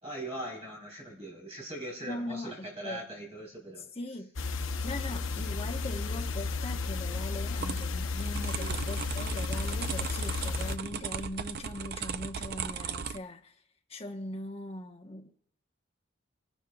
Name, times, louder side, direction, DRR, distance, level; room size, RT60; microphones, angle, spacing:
voice 1, 0.0-3.9 8.4-8.8, right 1 dB, 30° right, 4.2 m, -41 dB
voice 2, 2.0-3.0 3.9-4.3 4.8-13.5 13.9-15.3, left 1 dB, 30° left, 1.1 m, -40 dB
sound 1, 4.4-10.8, left 4 dB, 85° left, 0.8 m, -33 dB
sound 2, 7.6-13.2, right 6 dB, 50° right, 0.4 m, -37 dB
28.5 x 11.5 x 2.4 m
head